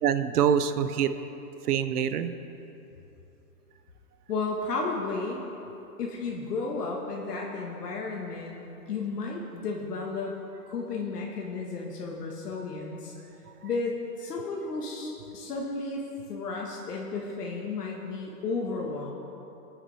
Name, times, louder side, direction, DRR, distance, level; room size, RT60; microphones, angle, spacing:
voice 1, 0.0-1.1 1.6-2.3, right 8 dB, 75° right, 11 dB, 0.8 m, -25 dB
voice 2, 4.3-5.4 6.0-8.6 8.9-10.3 10.7-13.1 13.6-16.0 16.3-19.1, left 3 dB, 80° left, -1 dB, 1.6 m, -33 dB
21.0 x 7.3 x 3.4 m, 2.9 s
hypercardioid pair, 155°, 46 cm